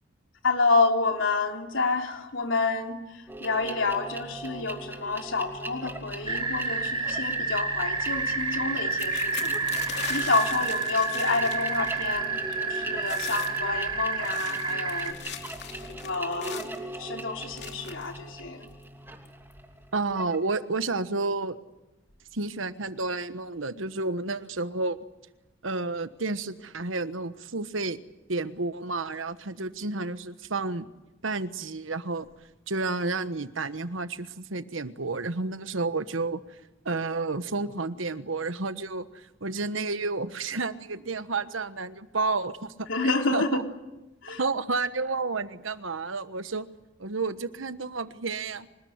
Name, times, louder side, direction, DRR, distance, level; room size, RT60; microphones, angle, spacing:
voice 1, 0.4-3.0 3.4-15.2 15.9-16.7 17.0-18.7 42.9-43.6 44.2-44.4, left 3 dB, 85° left, 3 dB, 3.4 m, -28 dB
sound 1, 3.3-20.5, right 1 dB, 10° right, 2.8 m, -41 dB
sound 2, 6.3-15.1, right 4 dB, 30° right, 3.7 m, -29 dB
sound 3, 8.9-12.2 12.5-12.8 13.0-13.6 14.1-16.8 17.6-18.1 18.8-18.9 19.2-19.5, left 8 dB, 60° left, 2.8 m, -40 dB
voice 2, 19.9-21.6 22.3-25.0 25.6-28.0 28.3-30.9 31.2-32.3 32.7-36.4 36.8-43.6 44.4-46.7 47.0-48.7, right 3 dB, 90° right, 12 dB, 1.3 m, -31 dB
25.5 x 20.0 x 9.6 m, 1.0 s
head